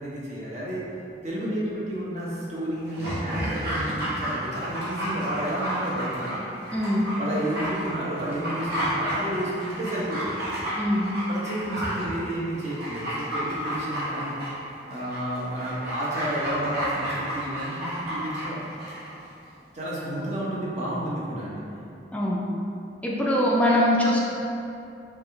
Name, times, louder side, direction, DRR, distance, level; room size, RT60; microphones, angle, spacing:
voice 1, 0.0-0.8 1.2-6.4 7.2-10.4 11.3-14.3 14.9-18.7 19.7-21.6, right 1 dB, 40° right, -7 dB, 0.9 m, -31 dB
Dog, 2.9-19.1 19.4-19.5, equal, 65° right, 1.1 m, -31 dB
voice 2, 6.7-7.0 10.8-11.1 22.1-22.4 23.0-24.2, left 1 dB, 10° left, -5 dB, 0.4 m, -22 dB
3.6 x 3.4 x 3.4 m, 2.7 s
head